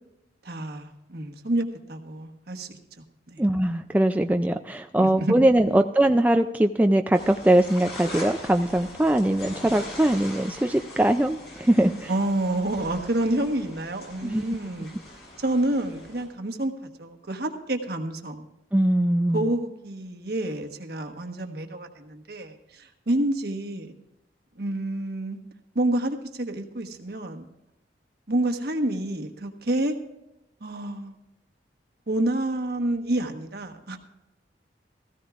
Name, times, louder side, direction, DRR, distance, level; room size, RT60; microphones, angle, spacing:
voice 1, 0.4-2.8 3.3-3.4 5.0-5.8 12.1-14.9 15.4-16.7 17.0-18.5 19.3-23.9 24.6-25.4 25.7-27.5 28.3-30.0 30.6-31.2 32.1-34.0, right 1 dB, 60° right, 4 dB, 1.3 m, -28 dB
voice 2, 3.4-12.1 14.2-14.4 18.7-19.5, right 1 dB, 10° right, 6 dB, 0.3 m, -21 dB
sound 1, 7.1-16.3, left 1 dB, 70° left, 4.1 m, -41 dB
16.5 x 15.0 x 2.5 m, 0.89 s
head